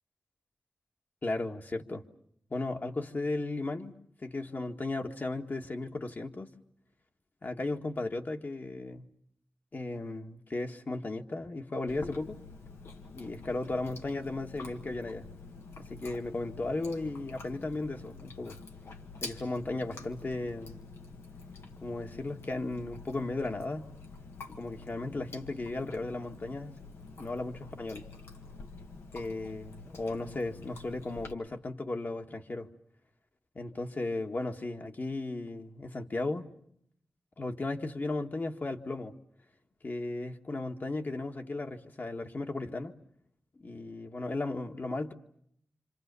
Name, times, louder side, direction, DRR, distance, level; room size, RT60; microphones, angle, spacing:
voice 1, 1.2-2.0 2.5-3.9 4.2-6.5 7.4-9.1 9.7-12.4 13.1-15.3 15.8-18.6 19.2-20.8 21.8-23.9 24.5-26.8 27.2-28.1 29.1-32.7 33.6-36.5 37.4-39.2 39.8-42.9 43.6-45.1, left 2 dB, 45° left, 4 dB, 1.8 m, -35 dB
Chewing mastication, 11.9-31.3, left 4 dB, 85° left, 1.8 m, -48 dB
27.0 x 26.5 x 7.0 m, 0.72 s
cardioid pair, 60°, 4 cm